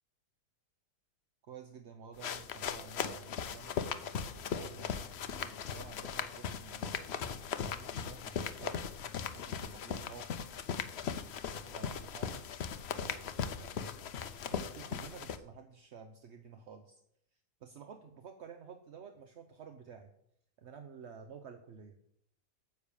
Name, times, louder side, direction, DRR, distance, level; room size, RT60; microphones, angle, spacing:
voice 1, 1.5-8.8 9.3-10.3 11.6-12.4 12.9-14.0 14.5-17.0 17.6-20.1 20.6-22.1, right 6 dB, 50° right, 6 dB, 0.9 m, -51 dB
sound 1, 2.2-15.4, left 7 dB, 60° left, 0.6 m, -38 dB
9.6 x 7.1 x 7.0 m, 0.73 s
omnidirectional pair, 1.9 m